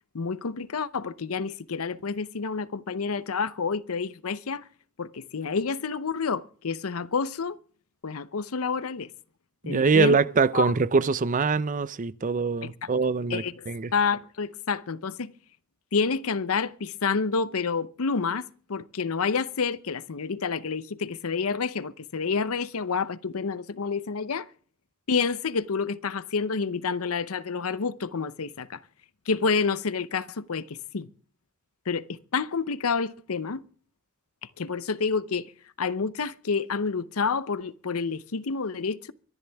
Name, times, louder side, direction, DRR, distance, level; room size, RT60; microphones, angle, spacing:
voice 1, 0.1-4.7 5.0-7.6 8.0-9.1 9.7-10.2 10.5-10.7 12.6-12.9 13.3-13.7 13.9-15.3 15.9-24.5 25.1-28.8 29.3-31.1 31.9-33.6 34.6-35.5 35.8-39.1, left 5 dB, 85° left, 0.7 m, -29 dB
voice 2, 9.6-13.9, right 4 dB, 40° right, 0.5 m, -23 dB
24.0 x 11.0 x 3.5 m
head